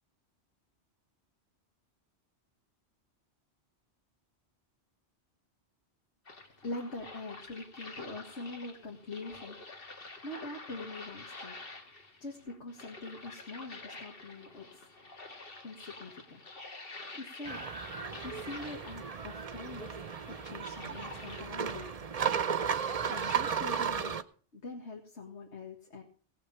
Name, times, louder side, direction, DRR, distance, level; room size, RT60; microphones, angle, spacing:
sound 1, 6.2-23.5, left 3 dB, 55° left, 2.0 m, -49 dB
voice 1, 6.6-9.6 10.2-11.6 12.2-14.8 15.6-16.4 17.2-17.6 18.2-19.9 20.3-21.9 23.1-24.1 24.5-26.0, left 2 dB, 80° left, 1 dB, 2.2 m, -43 dB
sound 2, 17.4-24.2, right 7 dB, 40° right, 0.7 m, -34 dB
17.5 x 6.6 x 7.0 m, 0.43 s
omnidirectional pair, 1.2 m